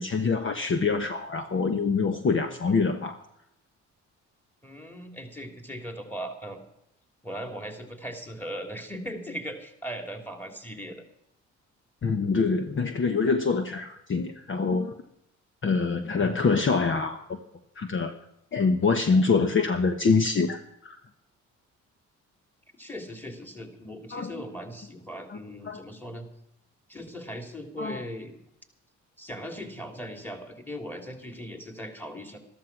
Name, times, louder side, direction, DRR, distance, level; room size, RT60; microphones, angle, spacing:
voice 1, 0.0-3.2 12.0-14.9 15.6-17.4 17.8-18.1 18.5-21.0 24.1-24.4 25.3-25.4 25.7-25.8 27.8-28.0, left 4 dB, 40° left, 7 dB, 1.2 m, -25 dB
voice 2, 4.6-6.6 7.2-11.0 16.1-16.4 19.1-19.2 22.8-26.3 26.9-28.3 29.2-32.4, equal, 5° left, 5 dB, 3.1 m, -39 dB
13.5 x 13.0 x 6.0 m, 0.80 s
cardioid pair, 90°, 30 cm